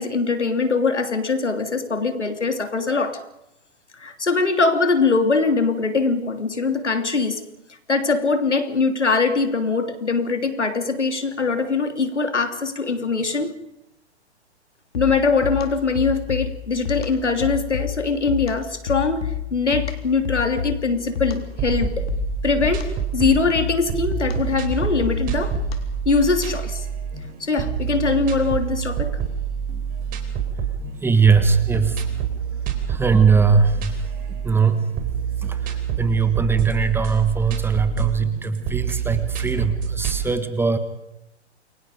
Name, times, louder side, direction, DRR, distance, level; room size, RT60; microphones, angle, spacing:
voice 1, 0.0-3.2 4.0-7.4 7.9-13.5 14.9-22.1 22.4-25.6 26.0-26.8 27.4-29.1, left 4 dB, 85° left, 8 dB, 3.2 m, -22 dB
sound 1, 14.9-26.1, left 10 dB, 60° left, 3.7 m, -30 dB
sound 2, 21.4-40.3, right 8 dB, 25° right, 3.8 m, -27 dB
voice 2, 31.0-32.2 32.9-34.9 35.4-40.8, right 5 dB, 5° right, 10 dB, 1.5 m, -20 dB
29.0 x 23.5 x 5.2 m, 0.86 s
figure-of-eight pair, 120°, 34 cm